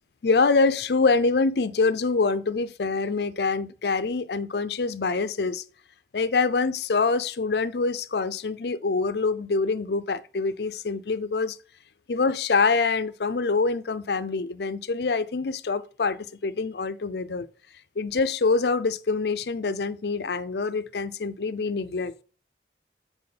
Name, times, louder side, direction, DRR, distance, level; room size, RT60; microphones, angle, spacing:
voice 1, 0.2-5.6 6.1-11.6 12.1-17.5 18.0-22.1, left 4 dB, 70° left, 0.5 m, -25 dB
7.6 x 4.6 x 4.2 m
head